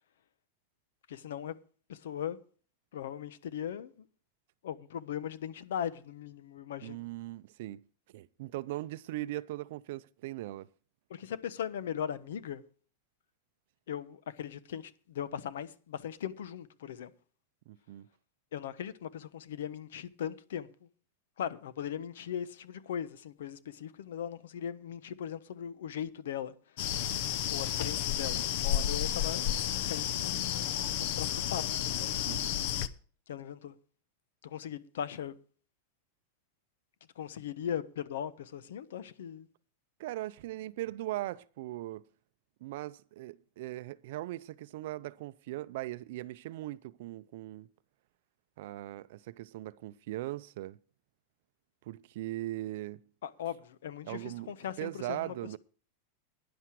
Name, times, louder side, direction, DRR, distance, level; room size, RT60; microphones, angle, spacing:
voice 1, 1.1-1.6 1.9-2.4 2.9-4.1 4.6-7.1 11.1-12.6 13.9-17.1 18.5-20.7 21.4-26.9 27.5-29.5 29.9-30.4 31.0-32.2 33.3-33.7 34.4-35.3 37.2-39.5 53.2-55.6, left 9 dB, 80° left, 1.1 m, -39 dB
voice 2, 6.8-7.8 8.1-10.7 17.7-18.1 32.2-32.6 40.0-42.0 42.6-47.7 48.6-50.8 51.9-53.0 54.1-54.5 54.8-55.6, right 16 dB, 55° right, 0.5 m, -39 dB
sound 1, 26.8-32.9, left 10 dB, 50° left, 0.7 m, -32 dB
12.0 x 10.5 x 4.8 m
supercardioid pair, 170°, 0 cm